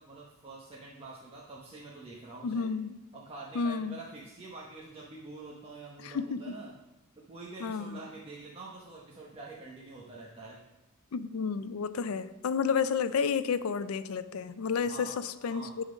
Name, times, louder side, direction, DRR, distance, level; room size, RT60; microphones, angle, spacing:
voice 1, 0.0-2.7 3.1-6.7 7.2-10.6 14.8-15.2 15.5-15.7, right 3 dB, 30° right, -5 dB, 1.0 m, -46 dB
voice 2, 2.4-3.0 3.5-4.0 6.0-6.6 7.6-8.0 11.1-15.8, left 6 dB, 80° left, 13 dB, 0.5 m, -31 dB
10.0 x 3.9 x 5.1 m, 0.99 s
head